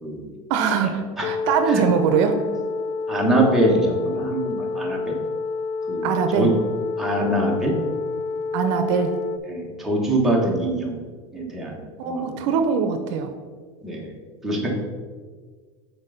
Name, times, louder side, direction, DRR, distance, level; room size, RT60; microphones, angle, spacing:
voice 1, 0.5-2.4 6.0-6.5 8.5-9.1 12.0-13.3, right 6 dB, 65° right, 7 dB, 0.7 m, -22 dB
sound 1, 1.2-9.4, left 4 dB, 55° left, 0.4 m, -28 dB
voice 2, 3.1-5.2 5.9-6.5 7.0-7.7 9.5-11.0 11.3-12.6 13.8-14.1 14.4-14.8, right 1 dB, ahead, -3 dB, 1.3 m, -24 dB
6.4 x 4.6 x 5.0 m, 1.5 s
supercardioid pair, 145°, 16 cm